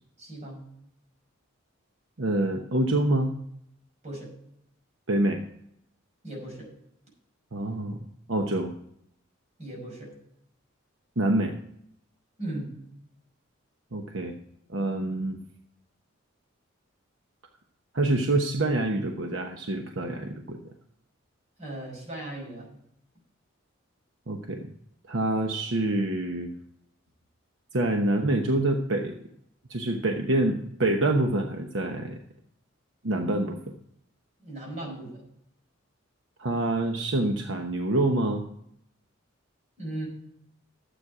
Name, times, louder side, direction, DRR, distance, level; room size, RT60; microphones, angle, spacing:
voice 1, 0.2-0.6 4.0-4.3 6.2-6.7 9.6-10.1 12.4-12.7 21.6-22.7 34.4-35.2 39.8-40.1, right 1 dB, 35° right, -2 dB, 5.7 m, -37 dB
voice 2, 2.2-3.3 5.1-5.4 7.5-8.0 8.3-8.7 11.2-11.5 13.9-14.3 14.7-15.4 17.9-20.6 24.3-24.7 25.1-26.5 27.7-29.1 29.7-32.2 33.0-33.6 36.4-38.4, right 2 dB, 65° right, 3 dB, 1.0 m, -26 dB
12.5 x 8.4 x 4.8 m, 0.73 s
head